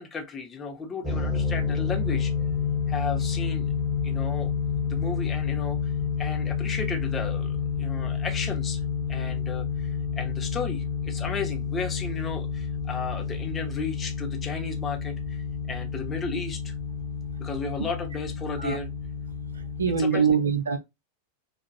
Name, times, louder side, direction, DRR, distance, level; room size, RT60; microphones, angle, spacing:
voice 1, 0.0-2.3 2.9-3.7 4.0-4.5 4.8-8.8 9.1-16.7 17.4-18.9 20.0-20.2, left 4 dB, 20° left, 0.9 m, -34 dB
sound 1, 1.0-20.0, left 5 dB, 15° right, 1.3 m, -29 dB
voice 2, 19.5-20.8, right 6 dB, 70° right, 0.5 m, -24 dB
4.6 x 2.4 x 2.2 m
figure-of-eight pair, 90°, 0 cm